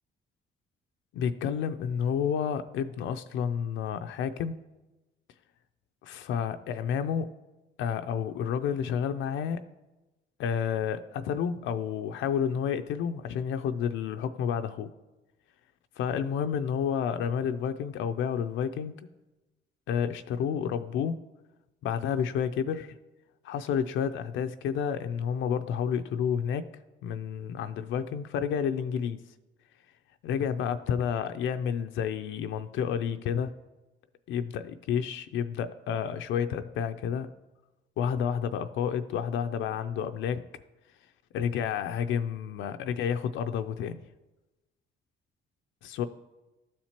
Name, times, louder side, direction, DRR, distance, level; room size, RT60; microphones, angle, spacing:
voice 1, 1.1-4.5 6.0-7.3 7.8-9.6 10.4-14.9 16.0-18.9 19.9-21.2 21.8-22.9 23.4-26.7 27.0-29.2 30.2-33.5 34.3-37.3 38.0-40.4 41.3-44.0 45.8-46.0, left 7 dB, 80° left, 9 dB, 0.4 m, -30 dB
12.5 x 4.3 x 2.9 m, 1.1 s
cardioid pair, 90°, 20 cm